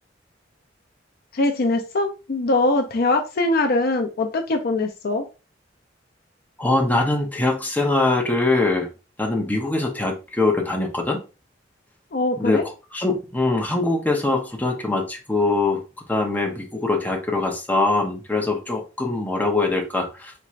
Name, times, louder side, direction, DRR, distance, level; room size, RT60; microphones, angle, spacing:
voice 1, 1.3-5.3 12.1-12.7, left 2 dB, 55° left, 5 dB, 0.5 m, -22 dB
voice 2, 6.6-8.9 9.2-11.2 12.4-12.6 12.9-15.8 16.1-20.3, left 2 dB, 10° left, 0 dB, 0.9 m, -22 dB
4.4 x 3.0 x 2.5 m, 0.30 s
head